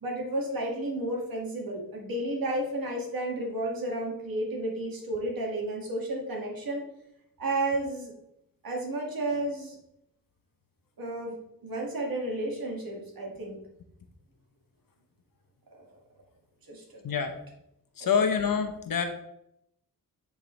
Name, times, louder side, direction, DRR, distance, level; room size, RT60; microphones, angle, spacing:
voice 1, 0.0-6.8 7.4-8.1 8.6-9.8 11.0-11.4 11.6-13.6 16.7-17.1, right 1 dB, 75° right, -1 dB, 2.0 m, -32 dB
voice 2, 17.0-17.3 18.0-19.0, left 6 dB, 70° left, 6 dB, 0.9 m, -26 dB
9.3 x 4.7 x 3.2 m, 0.78 s
wide cardioid pair, 120°, 35 cm